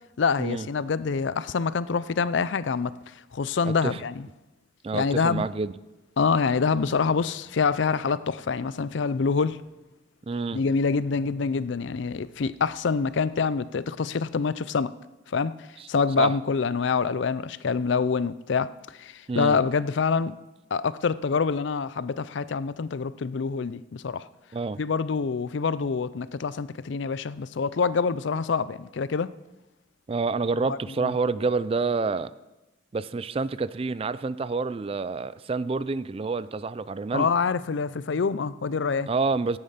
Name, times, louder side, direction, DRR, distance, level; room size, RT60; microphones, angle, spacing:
voice 1, 0.2-2.9 3.3-4.3 4.9-5.5 6.2-9.6 10.5-14.9 15.3-15.5 15.9-18.7 19.0-20.4 20.7-24.2 24.8-29.3 30.7-31.1 37.1-39.1, left 5 dB, 65° left, 17 dB, 0.5 m, -26 dB
voice 2, 3.7-4.0 4.8-5.7 10.3-10.6 15.8-15.9 16.2-16.3 19.3-19.6 24.5-24.8 30.1-32.3 32.9-37.3 39.1-39.6, right 4 dB, 30° right, 17 dB, 0.3 m, -28 dB
16.0 x 8.7 x 5.7 m, 1.0 s
head